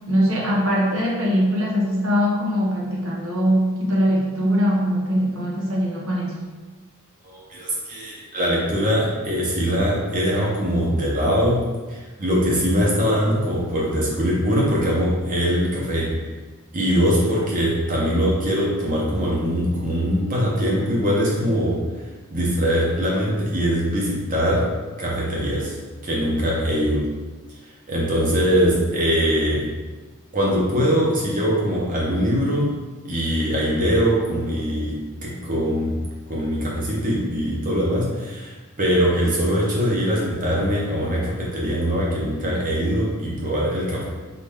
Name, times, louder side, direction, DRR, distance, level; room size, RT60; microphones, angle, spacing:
voice 1, 0.1-6.4, equal, 65° right, -4 dB, 1.1 m, -21 dB
voice 2, 7.2-11.6 11.9-16.1 16.7-21.8 22.3-24.7 25.0-25.8 26.0-27.1 27.9-29.7 30.3-32.7 33.0-44.1, equal, 35° right, -4 dB, 1.1 m, -22 dB
3.9 x 3.3 x 3.6 m, 1.3 s
head